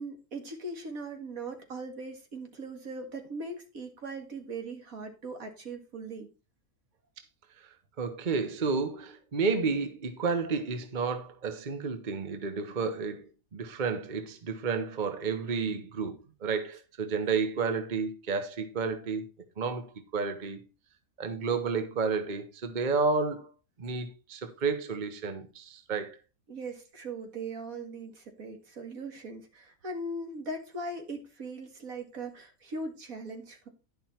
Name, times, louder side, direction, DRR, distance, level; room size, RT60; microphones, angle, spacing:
voice 1, 0.0-6.3 26.5-33.7, right 2 dB, 75° right, 2.3 m, -39 dB
voice 2, 8.0-19.2 19.6-19.9 20.1-20.6 21.2-23.5 23.8-26.2, right 4 dB, 35° right, 1.1 m, -31 dB
11.0 x 5.7 x 4.4 m
omnidirectional pair, 1.5 m